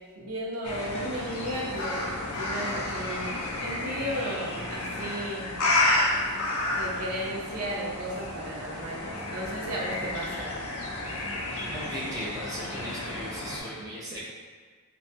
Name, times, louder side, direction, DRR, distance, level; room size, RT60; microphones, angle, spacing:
voice 1, 0.0-5.5 6.7-10.5, right 1 dB, 70° right, -3 dB, 0.5 m, -35 dB
sound 1, 0.6-13.6, left 2 dB, 75° left, 0.4 m, -31 dB
voice 2, 11.6-14.2, equal, 15° right, -8 dB, 0.6 m, -37 dB
2.6 x 2.2 x 2.7 m, 1.5 s
head